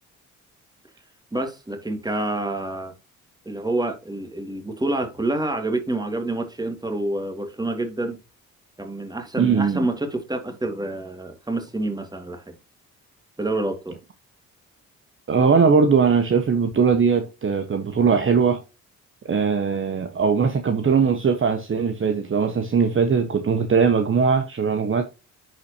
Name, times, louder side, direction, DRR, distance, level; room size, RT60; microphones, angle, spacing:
voice 1, 1.3-2.9 3.5-8.2 8.8-12.5 13.4-14.0, right 2 dB, 10° right, 2.2 m, -27 dB
voice 2, 9.4-9.8 15.3-18.6 19.2-25.0, right 5 dB, 35° right, 1.1 m, -20 dB
10.5 x 4.3 x 2.8 m
supercardioid pair, 60°, 34 cm